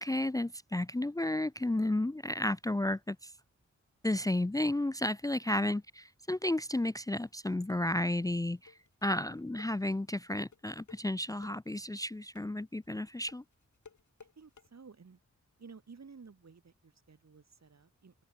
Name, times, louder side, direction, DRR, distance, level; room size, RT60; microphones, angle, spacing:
voice 1, 0.0-3.3 4.0-5.8 6.3-8.7 9.0-13.4, left 1 dB, 10° left, 0.6 m, -32 dB
sound 1, 7.2-14.7, left 5 dB, 80° left, 5.2 m, -59 dB
voice 2, 14.4-15.2 15.6-18.1, right 5 dB, 65° right, 3.5 m, -54 dB
open air
wide cardioid pair, 65°, 29 cm